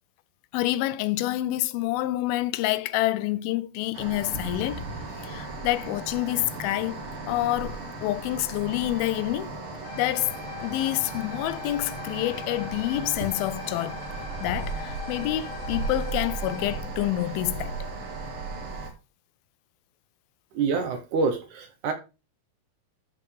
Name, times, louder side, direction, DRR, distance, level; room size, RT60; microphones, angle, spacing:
voice 1, 0.5-4.9 5.2-7.0 7.3-9.5 10.0-10.3 10.6-14.0 14.4-17.9, left 16 dB, 90° left, 2.4 m, -27 dB
sound 1, 3.9-18.9, right 3 dB, 45° right, 2.1 m, -36 dB
sound 2, 9.8-16.8, left 7 dB, 55° left, 1.8 m, -42 dB
voice 2, 20.5-21.9, right 4 dB, 70° right, 2.1 m, -26 dB
13.5 x 5.2 x 3.3 m
omnidirectional pair, 4.2 m